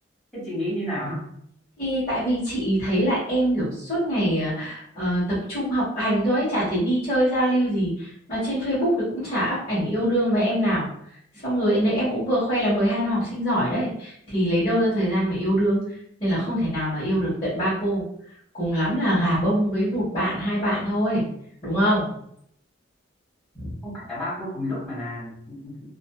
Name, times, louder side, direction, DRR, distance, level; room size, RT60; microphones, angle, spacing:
voice 1, 0.3-1.2 23.8-25.9, left 1 dB, ahead, -11 dB, 1.4 m, -31 dB
voice 2, 1.8-5.2 5.5-10.9 11.4-15.8 16.2-18.0 18.5-21.2 21.6-22.1 23.5-23.7, equal, 30° left, -13 dB, 1.1 m, -23 dB
2.5 x 2.5 x 2.2 m, 0.71 s
head